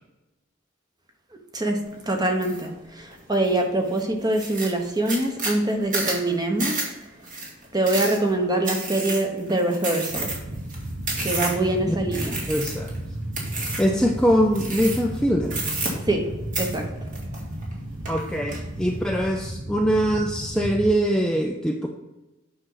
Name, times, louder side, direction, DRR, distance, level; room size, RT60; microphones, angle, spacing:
voice 1, 2.1-2.7 3.0-6.7 7.7-10.3 11.2-12.4 16.1-16.2 16.6-16.8, right 1 dB, 20° right, 3 dB, 1.2 m, -24 dB
sound 1, 2.4-2.7 3.1-3.6 4.0-4.1 4.3-11.7 12.1-13.0 13.3-13.9 14.5-15.2 15.5-16.3 16.5-17.7 18.0-18.6, right 2 dB, 40° right, 2.3 m, -30 dB
sound 2, 10.1-20.9, right 1 dB, 80° right, 1.6 m, -34 dB
voice 2, 12.5-12.9 13.8-15.6 18.1-21.9, equal, 5° left, 1 dB, 0.5 m, -22 dB
9.0 x 6.0 x 4.0 m, 1.0 s
head